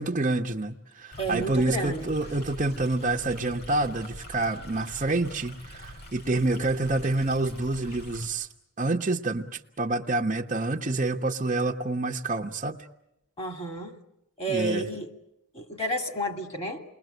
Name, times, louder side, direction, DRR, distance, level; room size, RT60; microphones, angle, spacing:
voice 1, 0.0-8.5 8.8-12.9 14.5-14.9, right 2 dB, 35° right, 0.9 m, -27 dB
Stream, 1.1-8.3, equal, 50° left, 6.9 m, -44 dB
voice 2, 1.2-2.1 13.4-13.9 14.4-15.1 15.5-16.8, right 1 dB, 25° left, 2.5 m, -31 dB
29.0 x 21.5 x 7.9 m
head